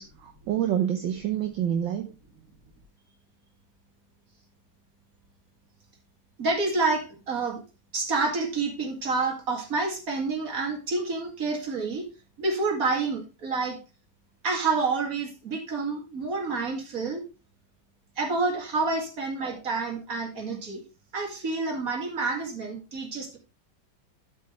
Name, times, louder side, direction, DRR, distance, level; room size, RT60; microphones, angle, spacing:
voice 1, 0.0-2.1, right 10 dB, 70° right, 5 dB, 1.5 m, -27 dB
voice 2, 6.4-7.6 7.9-12.0 12.4-13.8 14.4-17.2 18.2-20.8 21.1-23.4, right 3 dB, 45° right, 1 dB, 2.5 m, -28 dB
12.5 x 5.6 x 3.2 m, 0.32 s
omnidirectional pair, 2.2 m